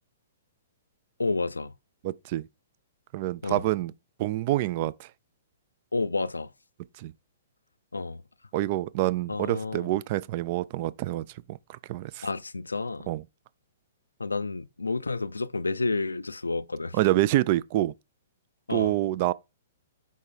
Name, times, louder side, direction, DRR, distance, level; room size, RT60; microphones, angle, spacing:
voice 1, 1.2-1.7 3.4-3.6 5.9-6.5 7.9-8.2 9.3-9.9 12.2-13.1 14.2-17.0 18.7-18.9, left 3 dB, 75° left, 0.4 m, -30 dB
voice 2, 2.0-2.5 3.1-3.9 4.2-5.1 7.0-7.1 8.5-12.3 13.1-13.2 16.9-17.9 18.7-19.3, right 15 dB, 40° right, 0.4 m, -27 dB
5.3 x 3.2 x 5.5 m
figure-of-eight pair, 115°, 0 cm